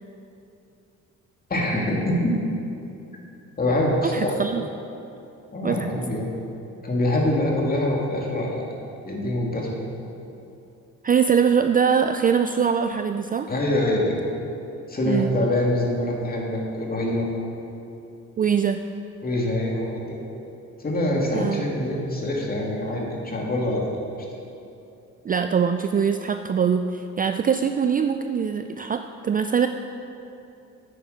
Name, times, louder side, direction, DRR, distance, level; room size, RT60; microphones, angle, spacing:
voice 1, 1.5-2.3 3.6-4.3 5.5-6.3 6.8-8.6 9.0-9.7 13.5-14.2 14.9-17.3 19.2-20.2 20.8-23.8, left 1 dB, 30° left, -2 dB, 2.3 m, -24 dB
voice 2, 4.0-4.7 5.6-5.9 11.0-13.5 15.0-15.3 18.4-18.8 21.3-21.7 25.2-29.7, right 7 dB, 30° right, 7 dB, 0.4 m, -22 dB
9.3 x 8.9 x 5.0 m, 2.8 s
cardioid pair, 90°, 30 cm